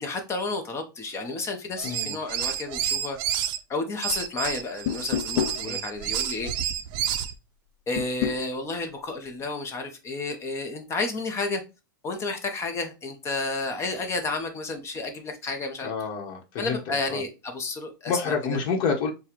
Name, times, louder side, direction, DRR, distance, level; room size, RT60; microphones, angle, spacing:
voice 1, 0.0-3.2 3.7-6.7 7.9-11.6 12.0-15.9 16.6-18.6, left 3 dB, 25° left, 5 dB, 0.9 m, -31 dB
voice 2, 1.8-2.1 5.6-5.8 15.8-16.8 17.1-17.2 18.1-19.1, left 5 dB, 45° left, 1 dB, 1.2 m, -28 dB
sound 1, 1.8-3.6 4.0-7.3, right 10 dB, 45° right, 0.5 m, -29 dB
sound 2, 4.9-5.6 8.0-8.4, left 10 dB, 65° left, 0.4 m, -27 dB
6.8 x 2.3 x 3.0 m, 0.28 s
hypercardioid pair, 125°, 11 cm